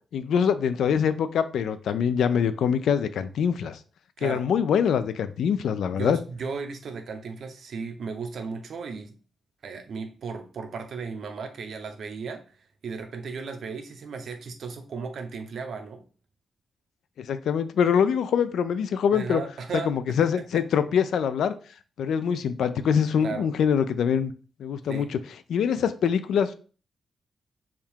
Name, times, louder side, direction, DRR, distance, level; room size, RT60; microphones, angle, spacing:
voice 1, 0.1-3.8 4.2-6.2 17.2-19.4 19.9-21.5 22.0-24.3 24.6-25.2 25.5-26.5, left 7 dB, 90° left, 12 dB, 0.3 m, -24 dB
voice 2, 4.2-4.5 5.9-9.1 9.6-12.4 12.8-16.0 19.1-20.6 23.2-23.5 24.9-25.1, right 5 dB, 65° right, 6 dB, 0.6 m, -35 dB
3.5 x 2.4 x 4.4 m, 0.38 s
wide cardioid pair, 145°, 0 cm